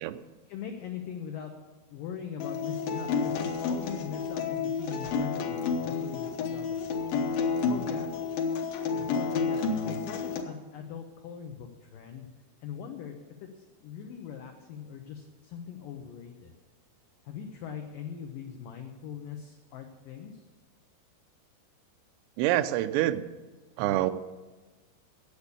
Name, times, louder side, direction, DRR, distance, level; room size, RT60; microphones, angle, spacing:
voice 1, 0.5-1.5 1.9-7.0 7.7-8.1 8.9-12.3 12.6-16.5 17.3-20.4, left 8 dB, 85° left, 4 dB, 1.9 m, -41 dB
Acoustic guitar, 2.4-10.4, left 5 dB, 70° left, 2.3 m, -30 dB
voice 2, 22.4-23.3 23.8-24.1, right 14 dB, 90° right, 11 dB, 2.9 m, -26 dB
10.0 x 8.2 x 8.2 m, 1.3 s
omnidirectional pair, 5.1 m